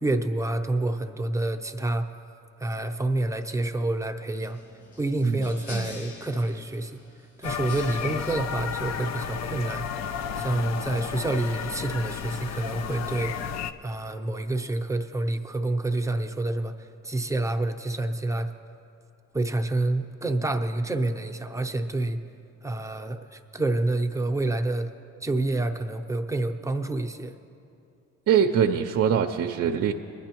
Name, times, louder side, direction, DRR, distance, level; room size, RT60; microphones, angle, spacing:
voice 1, 0.0-2.1 2.6-4.6 5.0-7.0 7.4-9.9 10.4-13.3 13.8-18.5 19.3-22.2 22.6-24.9 25.2-27.3, right 2 dB, 10° right, 6 dB, 0.7 m, -28 dB
sound 1, 4.4-9.4, left 2 dB, 90° left, 1.9 m, -45 dB
voice 2, 5.2-6.0 28.3-29.9, right 8 dB, 55° right, 4 dB, 0.5 m, -24 dB
sound 2, 7.4-13.7, left 7 dB, 60° left, 0.5 m, -32 dB
22.0 x 10.5 x 3.0 m, 2.6 s
cardioid pair, 90°, 30 cm